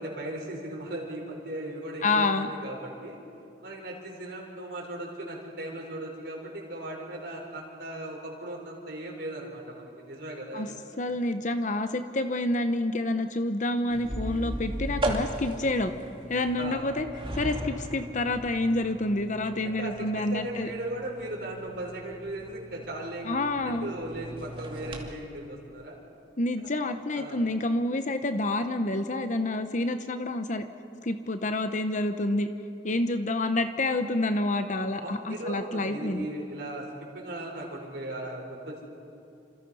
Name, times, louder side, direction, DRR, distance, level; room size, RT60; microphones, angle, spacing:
voice 1, 0.0-3.2 3.6-10.8 16.6-16.8 19.6-26.0 27.1-27.4 35.0-36.9 37.1-38.9, right 1 dB, 65° right, -2 dB, 4.5 m, -37 dB
voice 2, 2.0-2.5 10.5-10.7 11.0-15.9 16.3-17.1 17.3-20.7 23.2-23.9 26.4-30.6 31.0-32.5 32.8-36.3, left 2 dB, 45° left, 8 dB, 1.0 m, -28 dB
sound 1, 13.9-25.1, right 1 dB, 30° right, 2.5 m, -37 dB
28.5 x 26.5 x 5.6 m, 2.7 s
head